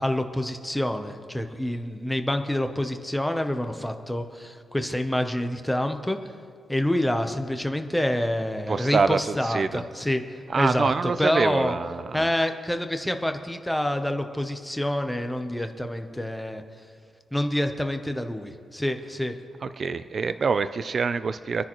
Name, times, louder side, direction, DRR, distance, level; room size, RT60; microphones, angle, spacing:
voice 1, 0.0-6.2 6.7-10.2 10.6-10.9 11.2-11.7 12.1-16.6 17.3-19.4, left 1 dB, 5° left, 6 dB, 0.7 m, -27 dB
voice 2, 8.7-9.8 10.5-12.3 19.6-21.6, right 5 dB, 35° right, 12 dB, 0.4 m, -26 dB
26.0 x 10.0 x 3.0 m, 2.3 s
wide cardioid pair, 170°, 0 cm